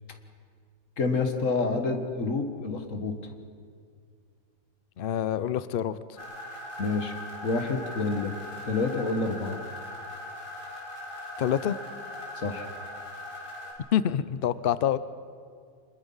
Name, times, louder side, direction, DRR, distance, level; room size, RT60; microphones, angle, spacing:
voice 1, 1.0-3.1 6.8-7.1 7.4-8.3 8.7-9.6 12.4-12.7, left 3 dB, 50° left, 6 dB, 1.9 m, -28 dB
voice 2, 5.0-6.0 11.4-11.8 13.9-15.0, left 10 dB, 85° left, 15 dB, 0.4 m, -26 dB
sound 1, 6.1-13.7, left 1 dB, 65° left, 4.8 m, -40 dB
25.5 x 21.0 x 5.6 m, 2.1 s
omnidirectional pair, 1.8 m